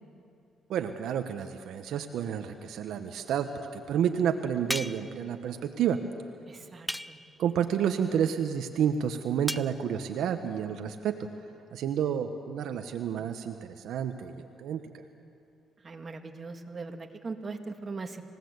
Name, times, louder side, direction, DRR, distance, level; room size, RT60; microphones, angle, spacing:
voice 1, 0.7-6.0 7.4-11.2 11.7-15.0, right 8 dB, 80° right, 6 dB, 1.1 m, -30 dB
sound 1, 4.7-5.2 6.9-7.4 9.5-9.7, equal, 5° left, 0.6 m, -35 dB
voice 2, 6.5-7.2 15.8-18.2, right 3 dB, 35° right, 4 dB, 2.0 m, -40 dB
26.5 x 17.0 x 8.1 m, 2.5 s
cardioid pair, 90°, 0 cm